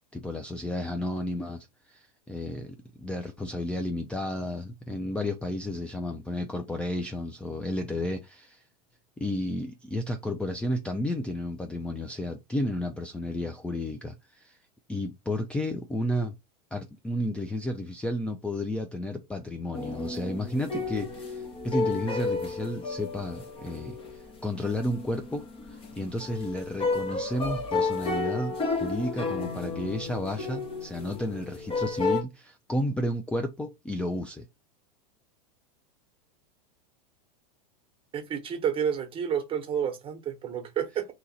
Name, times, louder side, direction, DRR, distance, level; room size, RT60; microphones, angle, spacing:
voice 1, 0.1-8.6 9.2-14.6 14.9-16.4 16.7-34.5, left 1 dB, 5° left, 0.4 m, -32 dB
sound 1, 19.7-32.2, left 3 dB, 25° left, 0.9 m, -32 dB
voice 2, 38.1-41.1, right 8 dB, 25° right, 1.0 m, -30 dB
2.9 x 2.5 x 4.1 m
hypercardioid pair, 105°, 21 cm